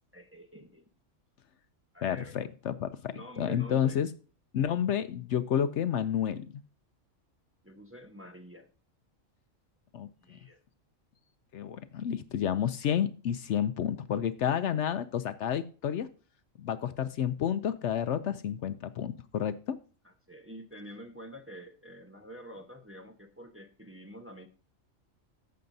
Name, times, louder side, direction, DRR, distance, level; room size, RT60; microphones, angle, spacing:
voice 1, 0.1-0.8 1.9-2.3 3.1-4.0 7.6-8.7 10.2-10.6 20.0-24.5, equal, 10° right, 4 dB, 0.8 m, -47 dB
voice 2, 2.0-4.1 4.5-6.6 9.9-10.4 11.5-16.1 16.6-19.8, left 9 dB, 70° left, 12 dB, 0.8 m, -30 dB
14.5 x 6.7 x 2.7 m, 0.38 s
omnidirectional pair, 1.3 m